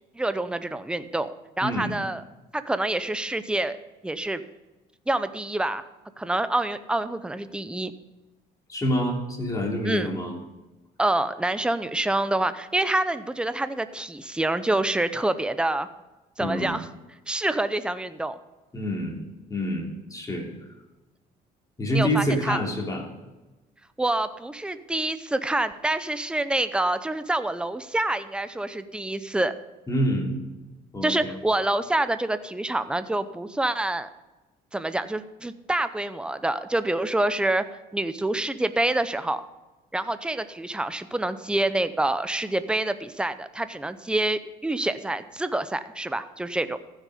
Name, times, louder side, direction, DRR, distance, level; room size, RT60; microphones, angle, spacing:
voice 1, 0.2-1.3 1.6-2.2 2.5-3.8 4.0-4.4 5.1-5.8 6.2-7.9 9.8-10.1 11.0-15.9 16.4-16.9 17.3-18.4 21.9-22.6 24.0-29.5 31.0-34.1 34.7-37.7 37.9-39.4 39.9-46.8, right 2 dB, 5° right, 12 dB, 0.7 m, -27 dB
voice 2, 1.6-1.9 8.7-10.3 16.4-16.7 18.7-19.2 19.5-20.5 21.8-23.0 29.9-30.4 30.9-31.3, equal, 20° left, 0 dB, 3.1 m, -27 dB
14.5 x 6.5 x 5.0 m, 1.1 s
cardioid pair, 110°, 17 cm